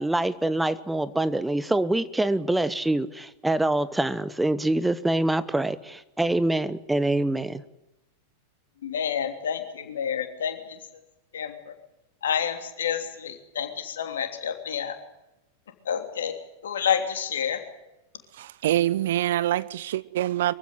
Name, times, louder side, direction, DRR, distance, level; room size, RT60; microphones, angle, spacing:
voice 1, 0.0-7.6, right 1 dB, 5° right, 1.0 m, -25 dB
voice 2, 8.8-10.8 11.3-11.7 12.2-15.0 15.8-16.3 16.6-17.6, left 8 dB, 65° left, 3.1 m, -29 dB
voice 3, 18.3-20.5, right 13 dB, 55° right, 1.0 m, -25 dB
24.5 x 15.5 x 9.5 m
figure-of-eight pair, 90°, 0 cm